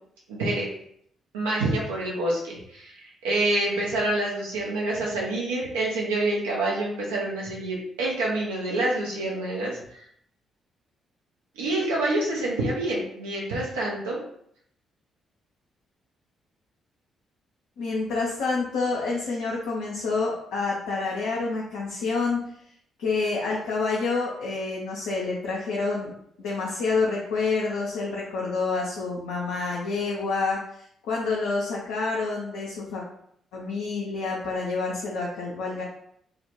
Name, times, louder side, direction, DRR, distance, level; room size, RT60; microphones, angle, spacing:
voice 1, 0.3-0.7 1.3-10.0 11.6-14.2, right 2 dB, 80° right, -3 dB, 0.6 m, -27 dB
voice 2, 17.8-22.4 23.0-26.1 26.4-33.0 33.5-35.8, left 4 dB, 70° left, -4 dB, 0.4 m, -28 dB
2.1 x 2.1 x 2.9 m, 0.69 s
hypercardioid pair, 40°, 0 cm